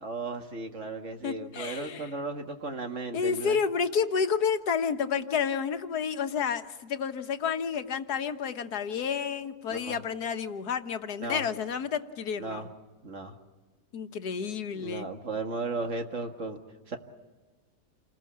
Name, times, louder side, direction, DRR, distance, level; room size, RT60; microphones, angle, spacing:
voice 1, 0.0-3.6 9.7-10.0 11.2-11.5 12.4-12.7 13.0-13.3 14.7-16.6 16.9-17.0, right 3 dB, 50° right, 5 dB, 2.1 m, -35 dB
voice 2, 1.2-2.1 3.1-12.6 13.9-15.1, left 6 dB, 80° left, 8 dB, 1.7 m, -30 dB
28.5 x 20.5 x 8.6 m, 1.3 s
omnidirectional pair, 1.7 m